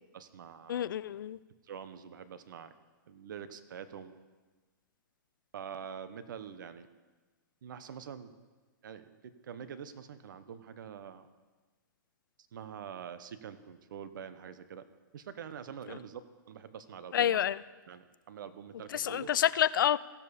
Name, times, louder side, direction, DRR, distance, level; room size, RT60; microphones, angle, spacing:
voice 1, 0.1-0.9 1.6-2.7 3.1-4.1 5.5-6.9 7.6-8.3 8.8-11.3 12.5-14.9 15.1-16.2 16.5-17.4 17.9-19.3, right 8 dB, 70° right, 12 dB, 0.9 m, -45 dB
voice 2, 0.7-1.4 15.9-16.0 17.1-17.6 18.9-20.0, left 10 dB, 75° left, 19 dB, 0.4 m, -28 dB
16.0 x 7.0 x 4.2 m, 1.3 s
hypercardioid pair, 130°, 11 cm